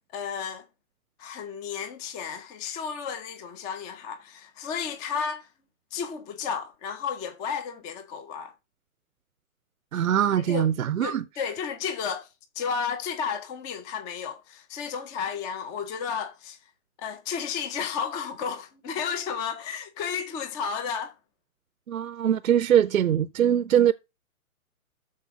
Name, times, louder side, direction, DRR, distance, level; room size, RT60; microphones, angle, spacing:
voice 1, 0.1-0.6 1.2-5.5 5.9-8.5 10.5-10.7 11.0-12.3 12.6-16.6 17.0-21.1, left 6 dB, 10° left, 0.5 m, -32 dB
voice 2, 9.9-11.2 21.9-23.9, right 10 dB, 75° right, 0.7 m, -22 dB
13.0 x 4.5 x 5.8 m
hypercardioid pair, 135°, 42 cm